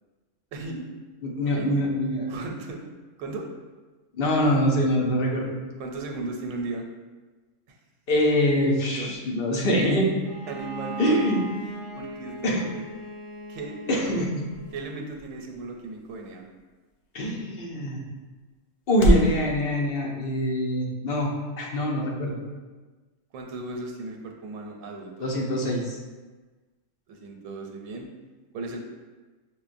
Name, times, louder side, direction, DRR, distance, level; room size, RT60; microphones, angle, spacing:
voice 1, 0.5-0.9 1.6-1.7 2.3-2.8 3.2-3.5 5.8-6.9 7.7-7.8 8.6-9.2 10.5-11.4 12.0-12.8 13.5-14.2 14.7-16.4 23.3-25.3 27.1-28.1 28.5-28.8, right 3 dB, 90° right, 2 dB, 1.0 m, -36 dB
voice 2, 1.2-2.3 4.2-5.5 8.1-10.1 11.0-11.4 12.4-12.6 13.9-14.4 17.1-18.0 18.9-21.3 21.6-22.4 25.2-26.0, equal, 55° left, -2 dB, 0.7 m, -24 dB
Bowed string instrument, 10.2-14.9, right 3 dB, 25° left, 1.7 m, -38 dB
sound 1, 13.1-19.4, equal, 75° left, 1.1 m, -31 dB
5.5 x 2.1 x 2.5 m, 1.3 s
omnidirectional pair, 1.3 m